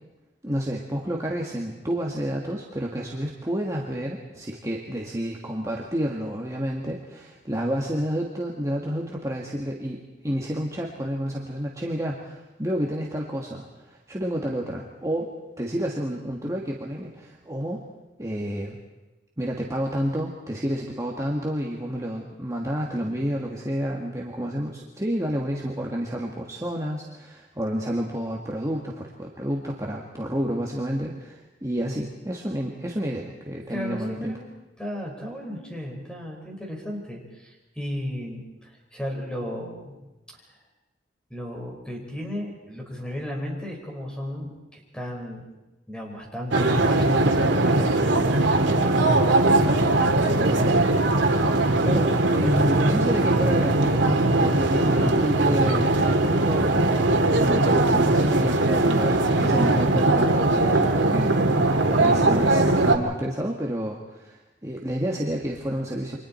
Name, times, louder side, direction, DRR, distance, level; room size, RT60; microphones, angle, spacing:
voice 1, 0.4-17.8 18.2-18.8 19.4-34.4 51.8-54.0 54.4-61.6 62.0-66.2, equal, 20° right, -1 dB, 1.7 m, -30 dB
voice 2, 33.7-34.4 34.8-38.4 38.9-39.9 41.3-45.4 45.9-49.8 50.2-50.8 52.4-52.5 54.8-55.2 61.9-62.3, equal, 5° left, -1 dB, 4.9 m, -34 dB
sound 1, 46.5-63.0, right 2 dB, 90° right, 2.0 m, -20 dB
29.0 x 24.5 x 4.4 m, 1.0 s
head